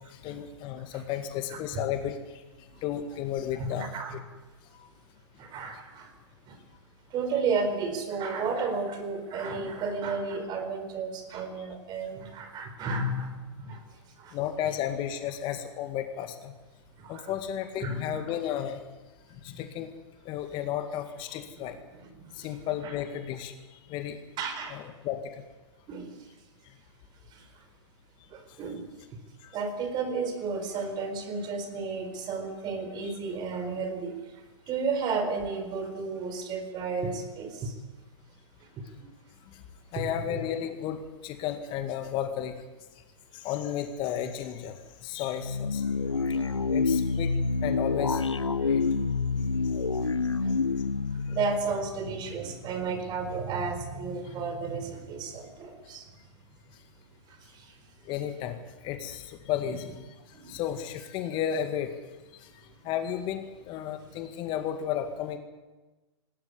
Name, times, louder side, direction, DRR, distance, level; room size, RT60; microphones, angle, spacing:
voice 1, 0.1-2.4 2.8-4.2 4.7-4.9 14.3-16.5 17.1-18.8 19.4-19.9 20.3-21.8 22.3-24.2 24.7-25.4 29.4-29.5 33.0-33.1 39.5-39.6 39.9-42.6 43.3-45.8 46.2-46.3 46.7-48.2 48.6-48.9 51.3-51.4 54.2-54.3 58.1-58.6 58.8-60.0 60.3-61.9 62.4-65.4, left 10 dB, 35° left, 7 dB, 2.0 m, -33 dB
voice 2, 1.5-1.8 3.6-4.2 5.4-6.1 6.5-6.6 7.1-13.8 14.2-14.4 17.0-17.3 17.8-18.0 21.6-22.5 22.8-22.9 24.4-24.8 25.9-26.2 27.3-27.6 28.3-28.9 29.5-37.7 39.0-39.1 40.0-40.1 46.3-46.4 48.6-48.7 49.3-49.6 50.0-50.1 50.4-50.6 51.1-56.1 57.3-57.8 60.3-60.6, right 4 dB, 30° right, 8 dB, 4.5 m, -33 dB
sound 1, 45.4-52.6, left 4 dB, 90° left, 0.8 m, -28 dB
19.0 x 19.0 x 9.8 m, 1.2 s
figure-of-eight pair, 110°, 15 cm